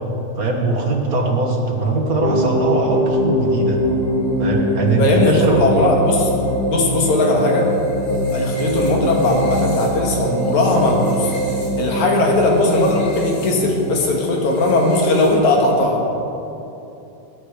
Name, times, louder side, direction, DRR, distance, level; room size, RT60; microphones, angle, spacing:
voice 1, 0.4-3.8 4.4-5.6, right 3 dB, 45° right, 0 dB, 1.2 m, -20 dB
sound 1, 2.2-15.7, equal, 85° left, 4.5 m, -23 dB
voice 2, 5.0-6.3 6.7-7.7 8.3-11.3 11.8-16.0, left 2 dB, 65° left, 0 dB, 3.1 m, -18 dB
21.0 x 9.9 x 4.9 m, 2.9 s
omnidirectional pair, 3.6 m